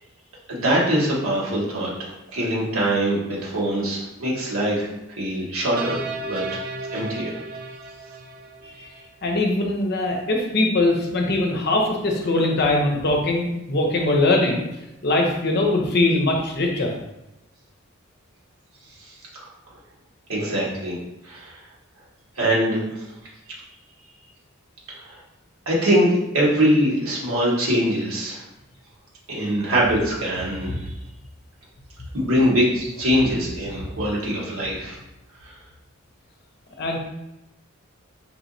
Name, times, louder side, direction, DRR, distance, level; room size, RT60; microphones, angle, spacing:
voice 1, 0.5-4.9 5.2-6.6 6.9-7.4 8.6-8.9 19.0-19.5 20.3-21.0 21.2-21.6 22.3-23.1 24.9-25.2 25.6-28.4 29.3-30.9 32.1-35.0 35.4-35.5, equal, 80° right, -5 dB, 1.5 m, -23 dB
sound 1, 5.8-9.1, right 3 dB, 45° right, 0.4 m, -34 dB
voice 2, 9.2-14.7 15.0-16.9 30.7-30.8 36.8-37.0, left 2 dB, 50° left, 1 dB, 0.7 m, -21 dB
4.6 x 3.0 x 2.7 m, 0.91 s
head